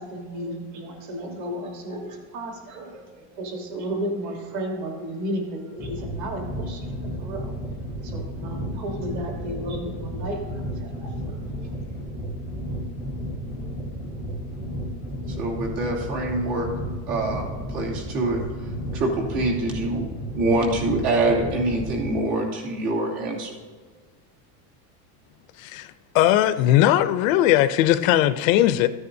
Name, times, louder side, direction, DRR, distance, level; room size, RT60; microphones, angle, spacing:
voice 1, 0.0-7.5 8.0-11.4, equal, 35° right, 1.4 m, -33 dB
sound 1, 5.8-22.2, equal, 5° right, 0.7 m, -33 dB
voice 2, 15.3-16.7 17.1-18.4 18.9-20.1 20.3-23.5, right 2 dB, 70° right, 2.8 m, -25 dB
voice 3, 25.6-28.9, left 13 dB, 60° left, 0.5 m, -19 dB
13.5 x 9.7 x 2.7 m
cardioid pair, 175°, 47 cm